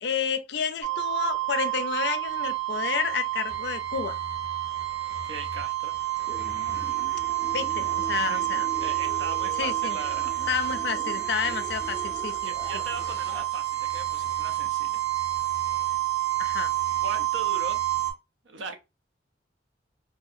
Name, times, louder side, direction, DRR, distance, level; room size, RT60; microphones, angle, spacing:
voice 1, 0.0-4.2 7.5-8.7 9.6-10.0 10.5-12.8 16.4-16.7, left 7 dB, 65° left, 0.4 m, -30 dB
sound 1, 0.8-18.1, right 15 dB, 55° right, 0.8 m, -29 dB
voice 2, 5.2-5.9 6.8-6.9 8.2-8.5 8.8-10.3 11.4-11.6 12.4-15.0 17.0-17.8 18.4-18.8, right 3 dB, 90° right, 0.6 m, -39 dB
sound 2, 6.3-13.4, equal, 15° right, 0.5 m, -42 dB
2.5 x 2.2 x 2.6 m
head